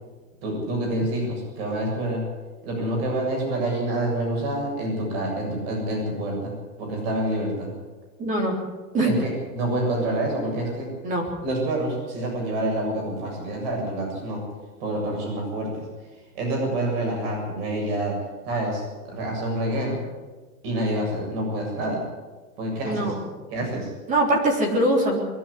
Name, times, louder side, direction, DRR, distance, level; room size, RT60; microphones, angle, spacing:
voice 1, 0.4-2.2 2.6-6.5 6.8-7.7 9.0-10.9 11.4-14.4 14.8-15.9 16.3-18.2 18.5-20.0 20.6-22.0 22.6-23.1 23.5-23.9, right 1 dB, 40° right, 0 dB, 7.7 m, -27 dB
voice 2, 8.2-8.5 8.9-9.1 11.0-11.3 22.8-23.1 24.1-25.2, right 1 dB, 15° right, 1 dB, 3.7 m, -22 dB
22.5 x 12.0 x 10.0 m, 1.3 s
supercardioid pair, 165°, 46 cm